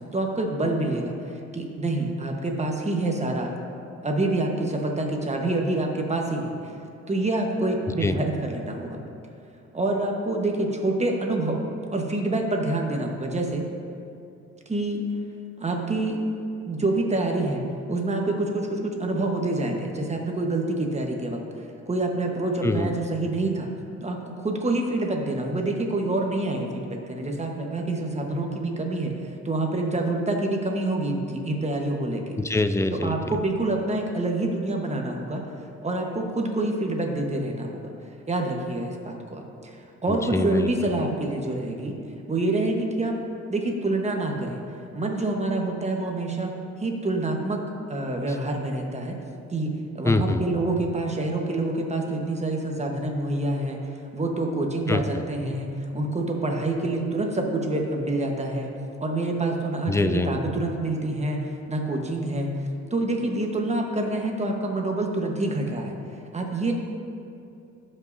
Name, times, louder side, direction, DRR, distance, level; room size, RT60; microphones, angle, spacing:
voice 1, 0.1-3.5 4.0-6.5 7.1-9.0 9.7-11.6 11.9-13.7 14.7-15.0 15.6-16.2 16.7-17.6 17.9-21.4 21.9-23.7 24.0-32.3 32.9-35.4 35.8-37.9 38.3-42.0 42.3-43.2 43.5-44.6 44.9-46.5 46.8-47.6 47.9-49.2 49.5-53.8 54.1-58.7 59.0-59.9 60.3-61.4 61.7-62.5 62.9-65.9 66.3-66.7, right 2 dB, 20° right, 1 dB, 1.2 m, -27 dB
voice 2, 22.6-22.9 32.4-33.4 40.1-40.7 50.0-50.4 54.9-55.0 59.9-60.3, left 2 dB, 10° left, 9 dB, 0.4 m, -24 dB
16.0 x 5.5 x 2.7 m, 2.6 s
cardioid pair, 90°, 30 cm